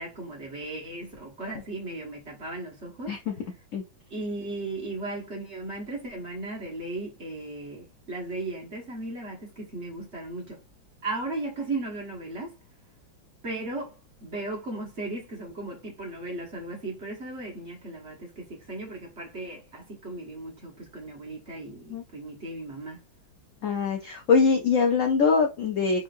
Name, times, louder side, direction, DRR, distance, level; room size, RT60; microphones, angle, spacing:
voice 1, 0.0-3.2 4.1-10.6 11.0-12.5 13.4-23.0, right 2 dB, 40° right, 1.5 m, -36 dB
voice 2, 23.6-26.0, left 5 dB, 70° left, 0.7 m, -23 dB
3.8 x 3.8 x 2.5 m
omnidirectional pair, 2.1 m